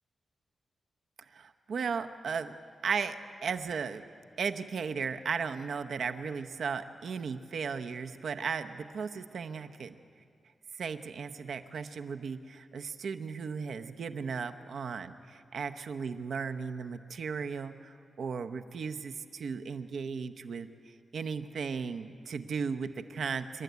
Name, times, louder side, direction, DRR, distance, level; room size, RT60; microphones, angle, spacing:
voice 1, 1.3-2.5 2.8-3.1 3.4-4.0 4.4-9.9 10.8-20.7 21.1-23.6, right 5 dB, 65° right, 8 dB, 0.9 m, -36 dB
27.0 x 12.0 x 9.3 m, 2.3 s
wide cardioid pair, 145°, 0 cm